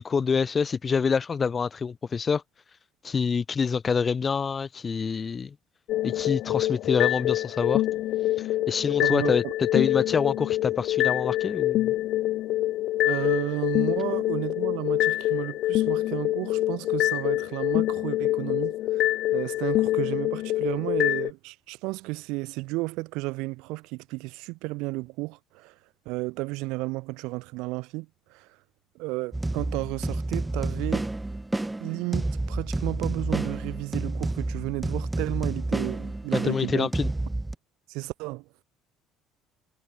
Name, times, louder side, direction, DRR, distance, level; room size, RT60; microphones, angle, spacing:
voice 1, 0.0-2.4 3.0-5.5 6.0-7.8 8.7-9.4 9.7-11.9 36.3-37.1, left 5 dB, 35° left, 6.3 m, -26 dB
sound 1, 5.9-21.3, left 15 dB, 70° left, 2.4 m, -26 dB
voice 2, 9.0-9.5 13.0-25.7 26.0-28.5 28.9-31.1 31.8-36.9 37.9-38.6, right 23 dB, 80° right, 7.8 m, -33 dB
sound 2, 29.3-37.6, right 2 dB, 10° right, 6.6 m, -30 dB
supercardioid pair, 80°, 0 cm